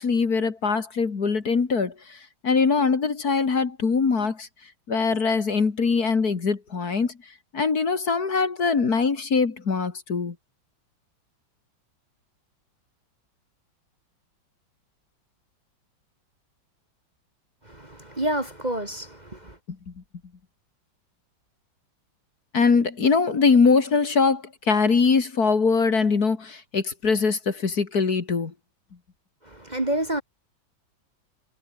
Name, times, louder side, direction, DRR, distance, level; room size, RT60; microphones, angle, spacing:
voice 1, 0.0-4.5 4.9-7.1 7.5-10.3 19.7-19.8 22.5-28.5, left 5 dB, 50° left, 2.6 m, -22 dB
voice 2, 17.6-19.6 29.4-30.2, right 1 dB, 20° right, 2.1 m, -29 dB
omnidirectional pair, 2.1 m